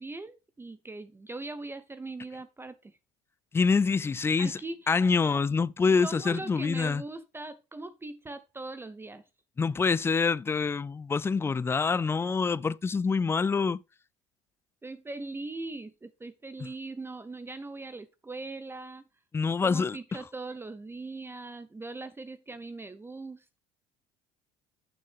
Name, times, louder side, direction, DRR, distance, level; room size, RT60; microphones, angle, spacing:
voice 1, 0.0-3.0 4.4-5.0 5.3-5.4 6.0-9.2 14.8-19.0 19.6-23.6, right 2 dB, 15° right, 0.7 m, -40 dB
voice 2, 3.5-4.6 4.9-7.0 9.6-13.8 19.3-20.0, left 5 dB, 15° left, 0.3 m, -26 dB
8.6 x 6.4 x 3.5 m
supercardioid pair, 80°, 15 cm